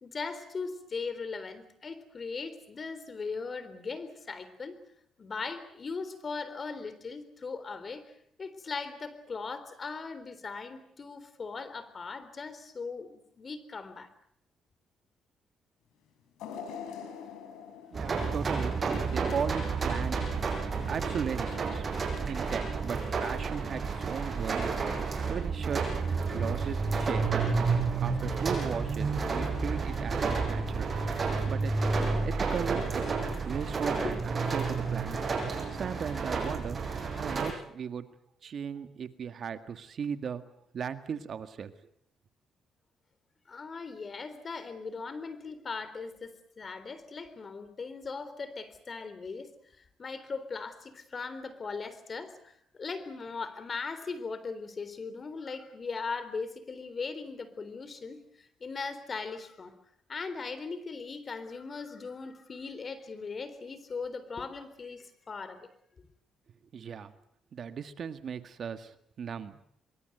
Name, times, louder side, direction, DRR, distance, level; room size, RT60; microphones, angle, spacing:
voice 1, 0.0-4.8 5.2-14.1 34.0-34.1 43.5-49.5 50.0-59.7 60.1-65.7, left 4 dB, 40° left, 13 dB, 3.8 m, -39 dB
sound 1, 16.4-19.5 20.0-20.1 21.1-21.2, left 7 dB, 90° left, 4.5 m, -44 dB
sound 2, 17.9-37.5, right 4 dB, 40° right, 6.2 m, -30 dB
voice 2, 17.9-18.7 19.1-20.5 20.8-21.9 22.3-24.7 25.0-25.8 26.3-27.3 28.0-30.9 31.5-31.7 32.2-33.1 33.4-35.2 35.7-36.8 37.1-38.0 38.4-40.5 40.7-41.7 66.7-67.1 67.5-69.6, right 7 dB, 55° right, 10 dB, 1.8 m, -37 dB
24.0 x 23.5 x 8.0 m, 0.69 s
cardioid pair, 90°, 0 cm